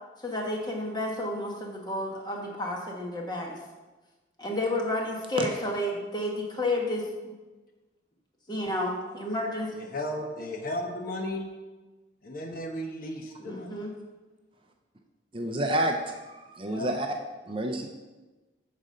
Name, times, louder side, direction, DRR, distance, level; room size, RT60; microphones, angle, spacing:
voice 1, 0.2-3.6 4.4-7.4 8.5-9.7 13.4-13.9, left 1 dB, 20° left, 0 dB, 1.3 m, -31 dB
voice 2, 9.7-11.5 12.2-13.8 16.7-16.9, left 1 dB, 45° left, 3 dB, 1.0 m, -35 dB
voice 3, 15.3-17.1 17.5-17.9, right 1 dB, 25° right, 3 dB, 0.6 m, -29 dB
8.8 x 4.2 x 6.4 m, 1.2 s
head